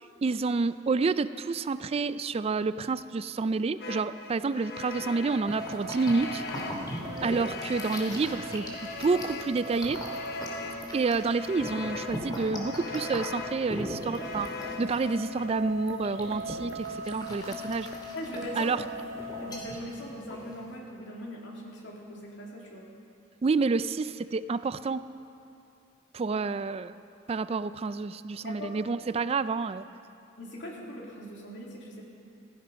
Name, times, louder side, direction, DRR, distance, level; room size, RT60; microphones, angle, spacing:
voice 1, 0.2-6.4 7.2-10.0 10.9-14.5 14.8-17.9 18.5-18.8 23.4-25.1 26.1-26.9 27.3-29.8, right 4 dB, 35° right, 14 dB, 0.3 m, -29 dB
sound 1, 3.8-15.5, left 4 dB, 60° left, 1.0 m, -41 dB
sound 2, 4.9-20.7, equal, 25° left, 2.7 m, -41 dB
sound 3, 5.4-19.6, equal, 15° right, 1.0 m, -41 dB
voice 2, 18.1-18.8 19.4-22.9 28.4-28.7 30.4-32.0, left 1 dB, 85° left, -2 dB, 2.8 m, -41 dB
16.5 x 15.0 x 5.2 m, 2.6 s
head